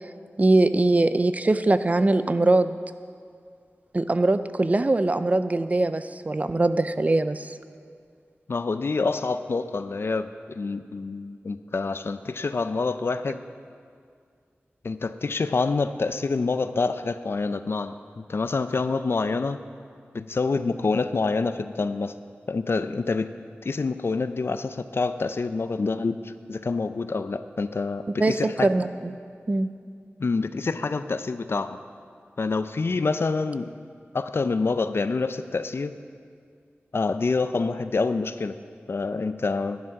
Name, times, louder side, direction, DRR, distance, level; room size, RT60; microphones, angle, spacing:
voice 1, 0.4-2.8 3.9-7.5 28.2-29.1 29.5-29.7, right 2 dB, 35° right, 11 dB, 0.4 m, -22 dB
voice 2, 8.5-13.4 14.8-19.6 20.1-22.1 22.5-23.3 23.6-28.7 30.2-31.8 32.4-33.7 34.1-35.9 36.9-38.6 38.9-39.8, left 4 dB, 60° left, 11 dB, 0.5 m, -27 dB
11.0 x 10.5 x 5.8 m, 2.2 s
wide cardioid pair, 85°, 5 cm